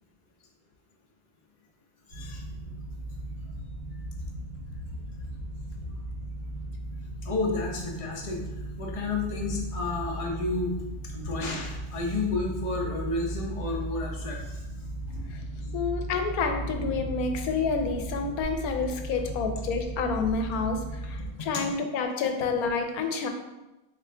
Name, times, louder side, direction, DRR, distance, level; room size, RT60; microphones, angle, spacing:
voice 1, 2.1-2.4 7.2-8.4 8.8-10.7 11.1-14.6 15.6-15.7 21.5-21.6, left 3 dB, 35° left, -1 dB, 0.6 m, -31 dB
sound 1, 2.1-21.3, right 1 dB, 65° right, 2.0 m, -36 dB
voice 2, 15.7-23.3, left 4 dB, 90° left, 5 dB, 1.1 m, -29 dB
3.8 x 3.6 x 3.3 m, 1.0 s
omnidirectional pair, 1.5 m